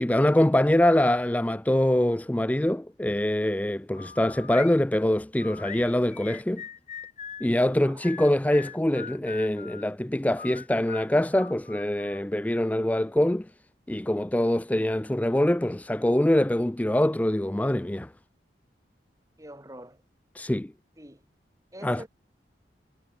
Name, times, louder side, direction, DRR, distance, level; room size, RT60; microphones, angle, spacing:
voice 1, 0.0-6.6 7.4-13.5 13.9-18.1 20.3-20.7 21.8-22.0, left 1 dB, 10° left, 0.4 m, -24 dB
sound 1, 3.9-4.7 5.4-7.5 8.0-9.8 10.4-12.2, left 7 dB, 40° left, 6.7 m, -41 dB
voice 2, 7.7-8.1 19.4-20.0 21.0-21.3 21.7-22.1, right 1 dB, 20° right, 6.2 m, -46 dB
head